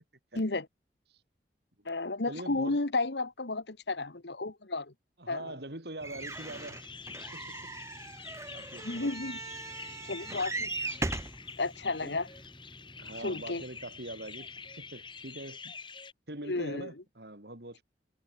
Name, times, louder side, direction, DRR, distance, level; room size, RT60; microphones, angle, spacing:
voice 1, 0.3-0.7 1.8-4.9 5.3-5.5 8.8-9.4 10.0-10.7 11.6-12.3 13.2-13.6 16.4-16.9, left 2 dB, 70° left, 1.4 m, -32 dB
voice 2, 2.3-2.8 5.2-6.8 7.3-7.7 8.5-9.4 9.8-10.1 12.0-12.1 13.0-15.7 16.3-17.8, right 1 dB, 65° right, 3.2 m, -43 dB
sound 1, 6.0-15.8, equal, 10° left, 4.2 m, -56 dB
sound 2, 6.0-11.4 12.1-12.2 12.4-12.5, right 3 dB, 15° right, 0.6 m, -39 dB
sound 3, 6.2-16.1, left 5 dB, 25° left, 6.8 m, -47 dB
head